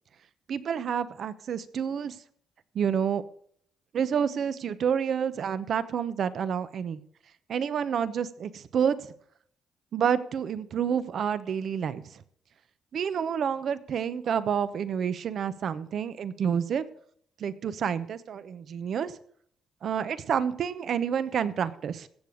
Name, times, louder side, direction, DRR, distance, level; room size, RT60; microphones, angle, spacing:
voice 1, 0.5-2.2 2.7-3.2 3.9-7.0 7.5-9.1 9.9-12.0 12.9-16.8 17.4-19.1 19.8-22.1, right 7 dB, 60° right, 14 dB, 0.9 m, -29 dB
16.5 x 7.0 x 6.4 m, 0.63 s
cardioid pair, 90°, 0 cm